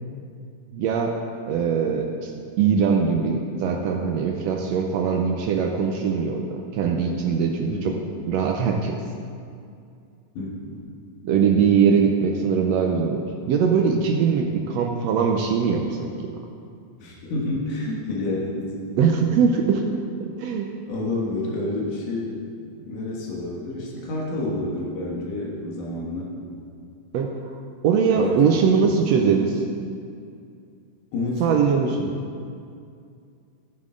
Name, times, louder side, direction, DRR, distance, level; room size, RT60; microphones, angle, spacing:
voice 1, 0.7-1.2 1.5-2.3 2.6-7.9 8.3-9.0 11.2-16.3 19.0-19.8 20.2-20.7 27.1-27.3 27.8-29.6 31.4-32.2, right 6 dB, 75° right, 2 dB, 1.6 m, -21 dB
voice 2, 7.7-8.0 10.3-10.8 17.0-19.1 20.9-22.4 22.8-26.3 28.2-28.9 31.1-31.6, left 2 dB, 90° left, -4 dB, 3.0 m, -29 dB
15.0 x 7.5 x 3.8 m, 2.4 s
omnidirectional pair, 3.5 m